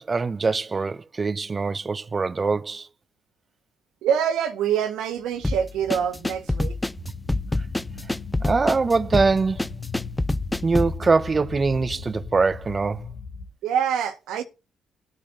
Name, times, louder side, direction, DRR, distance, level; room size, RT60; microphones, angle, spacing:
voice 1, 0.0-2.9 8.4-9.7 10.6-13.1, right 4 dB, 30° right, 0.7 m, -23 dB
voice 2, 4.0-6.8 13.6-14.4, right 8 dB, 90° right, 1.6 m, -25 dB
sound 1, 5.2-13.5, left 5 dB, 60° left, 1.8 m, -38 dB
sound 2, 5.4-11.0, left 2 dB, 10° left, 0.5 m, -26 dB
12.0 x 8.7 x 4.1 m
cardioid pair, 90°, 0 cm